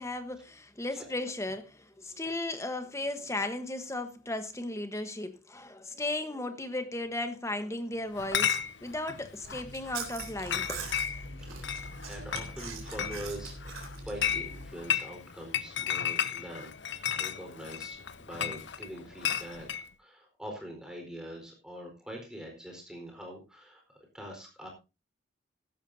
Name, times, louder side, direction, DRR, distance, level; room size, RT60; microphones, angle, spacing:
voice 1, 0.0-10.9, left 2 dB, 15° left, 1.2 m, -35 dB
Chatter / Chink clink, 8.2-19.9, left 9 dB, 55° left, 0.7 m, -34 dB
Chewing mastication, 9.4-14.8, right 3 dB, 85° right, 3.6 m, -42 dB
voice 2, 11.4-19.7 20.0-24.7, equal, 5° right, 4.5 m, -44 dB
15.5 x 12.5 x 2.8 m
head